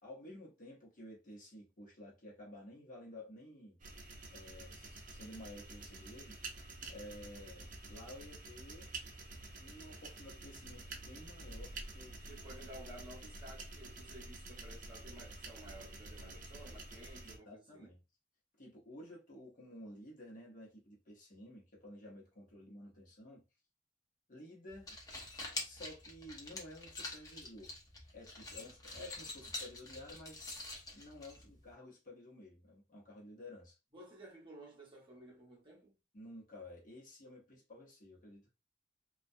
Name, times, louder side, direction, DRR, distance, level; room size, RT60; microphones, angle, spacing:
voice 1, 0.0-3.8 4.3-6.4 6.9-8.9 9.6-12.2 17.2-18.0 18.6-23.4 24.3-25.0 25.6-27.7 28.1-30.4 30.9-33.8 36.1-38.5, left 1 dB, 45° left, 0.9 m, -52 dB
sound 1, 3.8-17.4, right 2 dB, 45° right, 0.5 m, -49 dB
voice 2, 12.3-17.9 33.9-35.9, right 1 dB, 25° right, 0.9 m, -54 dB
sound 2, 24.7-31.7, left 2 dB, 20° left, 0.6 m, -46 dB
2.3 x 2.2 x 2.6 m
head